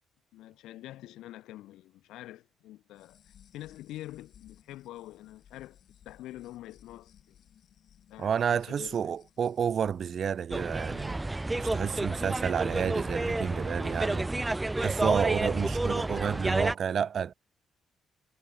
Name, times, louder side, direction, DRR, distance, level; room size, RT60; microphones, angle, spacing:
voice 1, 0.3-3.2 3.5-5.8 6.0-7.4 8.1-9.1, left 15 dB, 90° left, 4.1 m, -46 dB
sound 1, 2.9-11.6, left 9 dB, 65° left, 3.0 m, -60 dB
voice 2, 8.2-11.2 11.6-14.3 14.8-17.3, right 7 dB, 55° right, 0.8 m, -30 dB
sound 2, 10.5-16.7, right 2 dB, 15° right, 0.3 m, -30 dB
cardioid pair, 90°, 0 cm